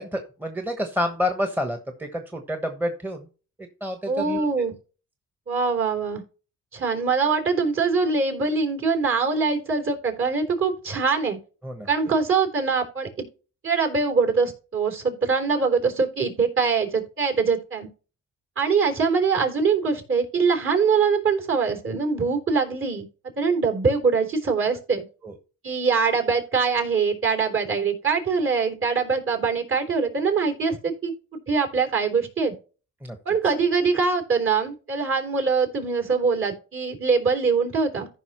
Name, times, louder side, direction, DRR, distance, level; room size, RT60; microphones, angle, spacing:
voice 1, 0.0-3.3 3.8-4.7 11.6-11.9 25.2-25.3 33.0-33.4, left 1 dB, 5° right, 6 dB, 1.3 m, -29 dB
voice 2, 4.1-4.7 5.5-6.2 6.7-11.4 11.9-13.1 13.6-17.9 18.6-23.0 23.4-25.0 25.6-32.5 33.3-38.1, right 5 dB, 45° right, 5 dB, 3.6 m, -23 dB
14.5 x 5.5 x 3.1 m, 0.36 s
cardioid pair, 90°, 30 cm